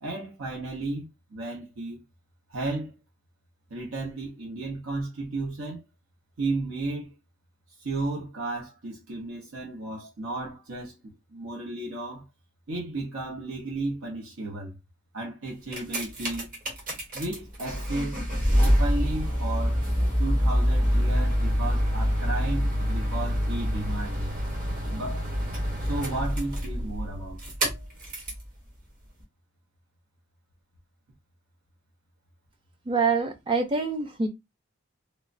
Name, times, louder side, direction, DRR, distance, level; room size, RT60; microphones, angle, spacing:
voice 1, 0.0-2.0 2.5-3.0 3.7-5.8 6.4-7.1 7.8-12.2 12.7-14.8 15.1-16.5 17.1-18.2 18.6-19.8 20.2-24.3 24.9-25.3 25.8-27.5, right 2 dB, 90° right, 0.7 m, -34 dB
sound 1, 15.5-28.5 29.2-29.3, equal, 40° right, 0.9 m, -26 dB
voice 2, 32.9-34.3, right 4 dB, 25° right, 0.5 m, -25 dB
3.0 x 2.1 x 2.5 m
head